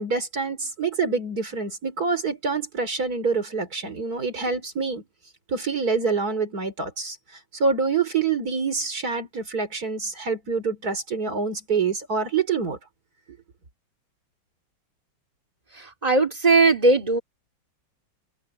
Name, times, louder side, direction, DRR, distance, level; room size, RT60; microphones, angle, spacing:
voice 1, 0.0-5.0 5.5-12.8, right 4 dB, 50° right, 4.1 m, -26 dB
voice 2, 15.8-17.2, right 3 dB, 20° right, 2.8 m, -19 dB
omnidirectional pair, 2.1 m